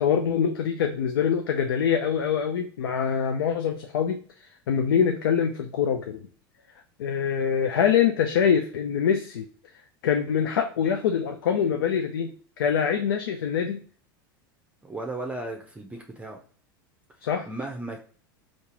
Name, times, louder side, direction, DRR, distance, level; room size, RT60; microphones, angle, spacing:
voice 1, 0.0-6.3 7.0-9.5 10.0-13.8 17.2-17.5, left 7 dB, 85° left, 5 dB, 0.4 m, -24 dB
voice 2, 14.8-16.4 17.5-18.0, right 2 dB, 10° right, 2 dB, 0.6 m, -35 dB
3.7 x 2.4 x 2.8 m, 0.44 s
hypercardioid pair, 100°, 12 cm